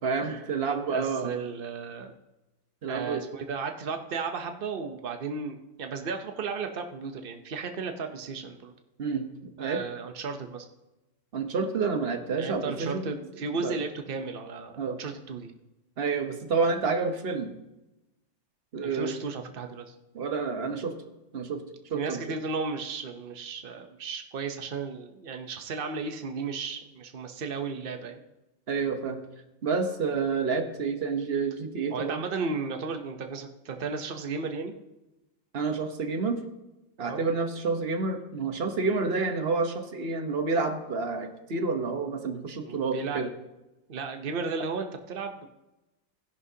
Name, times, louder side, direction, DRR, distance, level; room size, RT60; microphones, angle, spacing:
voice 1, 0.0-1.3 2.8-3.2 9.0-9.3 9.6-9.8 11.3-13.1 13.5-13.8 14.8-15.0 16.0-17.5 18.7-19.2 20.1-21.0 21.3-21.6 21.9-22.2 28.7-29.2 29.6-32.2 35.5-36.4 37.0-43.3, right 4 dB, 40° right, 6 dB, 0.9 m, -29 dB
voice 2, 0.9-2.1 2.9-8.7 9.6-10.7 12.4-15.5 18.8-19.9 21.9-28.2 31.9-34.7 37.0-37.2 42.6-43.3 43.9-45.6, right 4 dB, 80° right, 6 dB, 0.5 m, -34 dB
16.5 x 11.0 x 2.8 m, 1.0 s
omnidirectional pair, 2.1 m